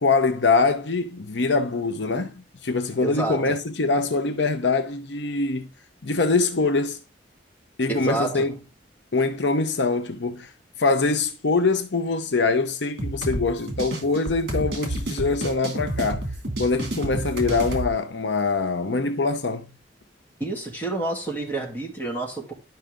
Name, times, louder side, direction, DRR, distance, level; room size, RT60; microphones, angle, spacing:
voice 1, 0.0-5.7 6.0-7.0 7.8-8.6 9.1-10.5 10.8-16.3 16.6-19.7, left 3 dB, 70° left, 0.8 m, -23 dB
voice 2, 3.0-3.6 7.9-8.6 20.4-22.5, right 3 dB, 10° left, 3.0 m, -29 dB
sound 1, 13.0-17.9, right 1 dB, 60° right, 2.6 m, -30 dB
11.5 x 5.6 x 3.7 m
head